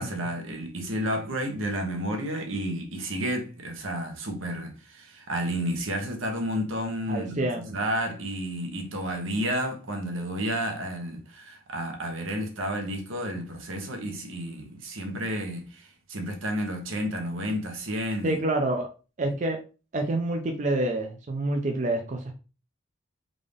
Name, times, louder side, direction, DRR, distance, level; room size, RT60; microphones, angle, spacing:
voice 1, 0.0-18.4, equal, 85° right, 1.0 m, -31 dB
voice 2, 7.1-7.8 18.2-18.9 19.2-19.6 19.9-22.3, right 2 dB, 35° right, 0.4 m, -27 dB
3.7 x 2.5 x 3.4 m
head